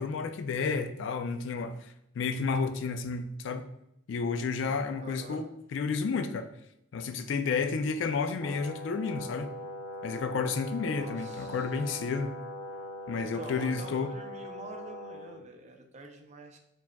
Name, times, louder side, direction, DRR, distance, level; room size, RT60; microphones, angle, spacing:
voice 1, 0.0-1.9 2.1-3.6 4.1-6.5 6.9-9.5 10.0-12.3 13.1-14.1, left 5 dB, 65° left, 0.3 m, -31 dB
voice 2, 5.0-5.4 10.9-11.8 13.3-16.6, right 2 dB, 35° right, 0.5 m, -47 dB
Brass instrument, 8.4-15.4, left 1 dB, 20° left, 1.4 m, -41 dB
4.8 x 3.4 x 2.2 m
head